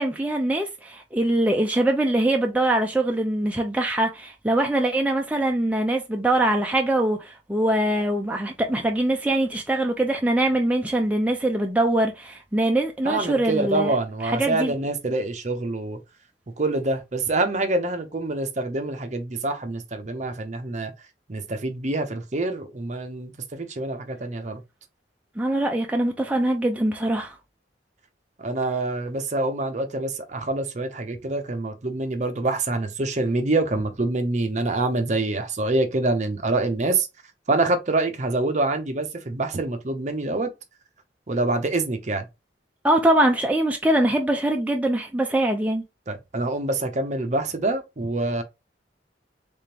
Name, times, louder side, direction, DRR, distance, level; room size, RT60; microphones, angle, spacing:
voice 1, 0.0-14.0 14.2-14.7 25.4-27.4 42.8-45.8, right 1 dB, 10° right, 0.4 m, -23 dB
voice 2, 13.0-16.0 16.6-20.9 21.3-24.6 28.4-37.1 37.5-40.5 41.3-42.2 46.1-48.4, right 2 dB, 40° right, 0.7 m, -26 dB
3.5 x 3.4 x 2.8 m
head